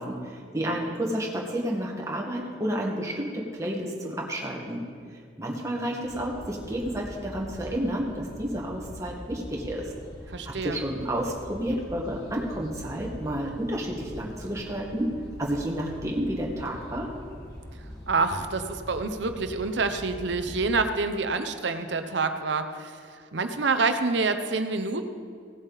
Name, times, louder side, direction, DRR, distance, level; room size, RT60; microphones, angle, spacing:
voice 1, 0.0-4.8 5.4-9.9 10.5-15.1 15.4-17.1, equal, 15° right, -3 dB, 1.7 m, -30 dB
sound 1, 6.0-20.7, equal, 20° left, 2.0 m, -43 dB
voice 2, 10.3-10.8 18.1-25.0, right 3 dB, 65° right, 8 dB, 0.8 m, -27 dB
17.5 x 7.9 x 4.1 m, 2.2 s
head